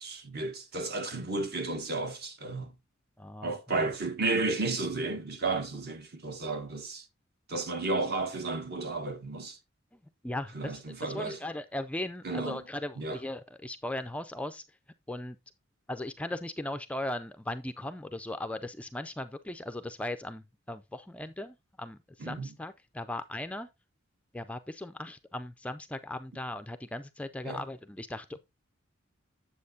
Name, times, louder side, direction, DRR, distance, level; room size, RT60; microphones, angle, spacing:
voice 1, 0.0-2.7 3.4-7.0 7.5-9.6 10.5-11.4 12.2-12.6 13.0-13.2 22.2-22.5 27.4-27.6, right 3 dB, 50° right, 1.2 m, -33 dB
voice 2, 3.2-3.5 10.2-14.6 15.1-15.4 15.9-23.7 24.3-28.4, left 1 dB, 5° left, 0.3 m, -38 dB
8.5 x 7.5 x 2.6 m
head